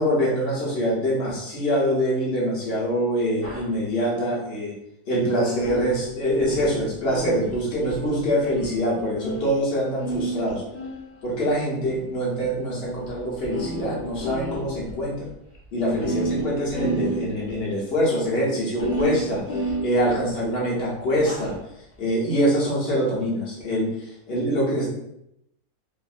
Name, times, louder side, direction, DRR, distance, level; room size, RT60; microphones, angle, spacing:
voice 1, 0.0-4.7 5.1-10.6 11.2-15.3 15.7-19.4 19.8-21.5 22.0-23.9 24.3-24.9, equal, 45° left, -6 dB, 0.9 m, -24 dB
sound 1, 3.4-3.7 5.6-9.7 10.0-11.5 12.4-12.5 13.1-13.2 13.4-14.9 15.3-15.4 15.5-15.6 15.9-17.6 18.8-20.5 21.2-21.6, right 1 dB, 65° left, 0.5 m, -31 dB
2.7 x 2.5 x 2.4 m, 0.80 s
omnidirectional pair, 1.8 m